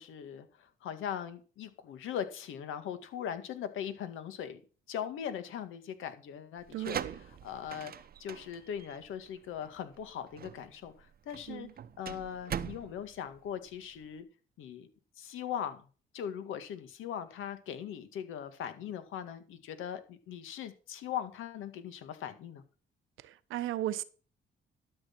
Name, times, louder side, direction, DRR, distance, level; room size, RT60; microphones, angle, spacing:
voice 1, 0.0-4.6 4.9-11.7 12.0-14.3 14.6-14.9 15.2-15.8 16.1-22.6, left 9 dB, 85° left, 1.9 m, -40 dB
sound 1, 6.6-14.2, right 8 dB, 50° right, 0.8 m, -42 dB
voice 2, 6.7-7.1 11.5-11.7 23.5-24.0, right 13 dB, 85° right, 1.0 m, -35 dB
12.5 x 6.5 x 5.9 m
cardioid pair, 90°, 20 cm